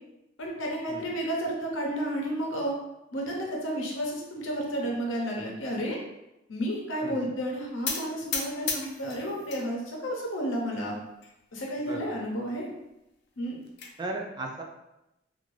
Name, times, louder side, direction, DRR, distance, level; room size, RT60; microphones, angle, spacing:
voice 1, 0.4-2.7 3.1-6.0 6.5-11.0 11.5-12.7 13.4-13.6, equal, 85° left, -1 dB, 0.7 m, -31 dB
sound 1, 7.9-9.6 10.0-10.7 11.2-11.3 11.6-11.7 12.1-12.2 13.3-13.9, left 5 dB, 60° left, 0.5 m, -34 dB
voice 2, 11.8-12.2 14.0-14.6, right 2 dB, 25° right, 1 dB, 0.3 m, -36 dB
2.5 x 2.5 x 3.1 m, 0.90 s
head